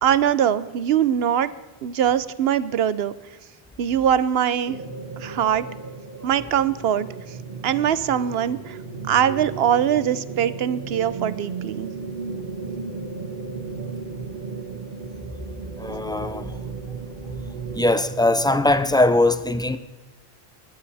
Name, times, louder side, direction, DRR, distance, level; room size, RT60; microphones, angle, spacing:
voice 1, 0.0-1.5 1.8-3.1 3.8-4.8 5.2-5.6 6.2-7.1 7.6-8.8 9.1-11.9, right 9 dB, 80° right, 0.9 m, -22 dB
sound 1, 4.6-18.7, right 4 dB, 50° right, 1.7 m, -35 dB
voice 2, 15.8-16.5 17.7-19.8, left 2 dB, 5° left, 0.4 m, -20 dB
16.5 x 11.5 x 4.2 m
omnidirectional pair, 1.0 m